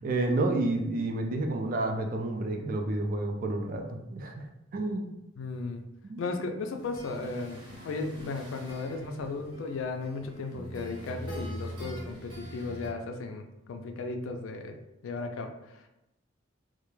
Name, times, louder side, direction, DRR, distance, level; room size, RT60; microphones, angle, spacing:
voice 1, 0.0-4.5 4.7-5.1 6.0-6.3, right 2 dB, 45° right, 3 dB, 0.4 m, -30 dB
voice 2, 5.4-5.8 6.2-14.8 15.0-15.9, left 3 dB, 80° left, 6 dB, 0.4 m, -35 dB
sound 1, 6.8-12.9, equal, 25° right, 0.8 m, -43 dB
2.3 x 2.1 x 3.0 m, 0.88 s
head